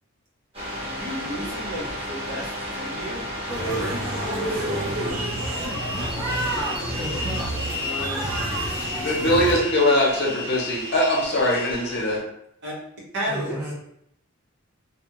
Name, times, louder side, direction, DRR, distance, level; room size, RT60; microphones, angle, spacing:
sound 1, 0.5-12.2, left 1 dB, 25° right, 1.1 m, -33 dB
voice 1, 0.8-4.0 4.3-5.3 7.7-8.3 9.0-9.1 12.6-12.7 13.1-13.6, equal, 55° right, -5 dB, 1.1 m, -34 dB
sound 2, 3.5-9.6, right 1 dB, 75° right, 0.6 m, -29 dB
voice 2, 6.9-7.5 13.3-13.7, right 1 dB, 5° right, -5 dB, 0.6 m, -33 dB
voice 3, 9.0-12.2, left 1 dB, 55° left, -3 dB, 0.8 m, -21 dB
2.4 x 2.4 x 2.9 m, 0.74 s
head